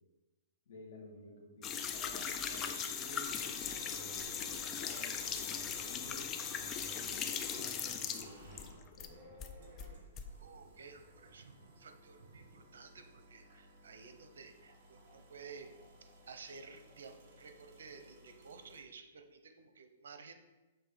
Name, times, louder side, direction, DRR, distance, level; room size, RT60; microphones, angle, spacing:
voice 1, 0.7-6.2 6.6-9.3, left 1 dB, 50° left, 1 dB, 1.5 m, -54 dB
sound 1, 1.6-9.1 9.4-10.3, left 7 dB, 15° left, 0.3 m, -39 dB
sound 2, 2.2-7.4, right 2 dB, 60° right, 1.1 m, -56 dB
sound 3, 3.3-18.8, equal, 35° right, 1.5 m, -57 dB
voice 2, 10.4-15.7 16.0-20.3, right 5 dB, 90° right, 7 dB, 0.9 m, -53 dB
7.1 x 3.7 x 5.1 m, 1.1 s
hypercardioid pair, 175°, 0 cm